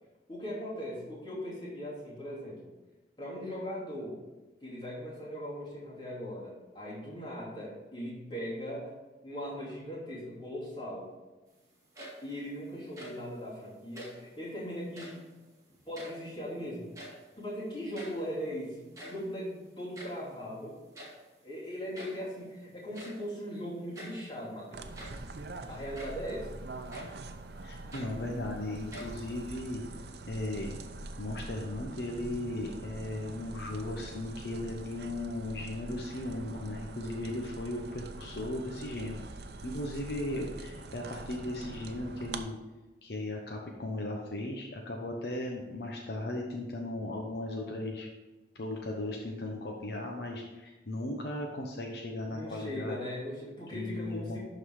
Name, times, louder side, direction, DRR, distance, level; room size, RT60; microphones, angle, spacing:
voice 1, 0.3-2.7 3.2-4.2 4.6-8.9 9.2-11.1 12.2-15.2 15.9-16.9 17.4-20.8 21.4-24.9 25.7-26.6 52.3-54.4, equal, 25° left, -6 dB, 2.9 m, -39 dB
sound 1, 11.8-12.4 12.8-13.3 13.9-14.3 14.8-15.3 15.7-16.5 16.8-17.4 17.7-17.8 17.9-18.3 18.8-20.3 20.9-21.3 21.9-22.3 22.9-23.3 23.9-24.3 24.8-25.3 25.9-26.3 26.9-27.2 27.7-28.5 28.9-29.5, equal, 20° right, 1.9 m, -47 dB
sound 2, 24.7-42.4, right 2 dB, 65° right, 0.6 m, -44 dB
voice 2, 27.6-29.8 30.3-30.8 31.2-39.2 39.6-42.6 43.0-48.1 48.6-53.1 53.7-54.4, left 1 dB, 65° left, 0 dB, 0.9 m, -37 dB
11.5 x 4.0 x 4.8 m, 1.1 s
head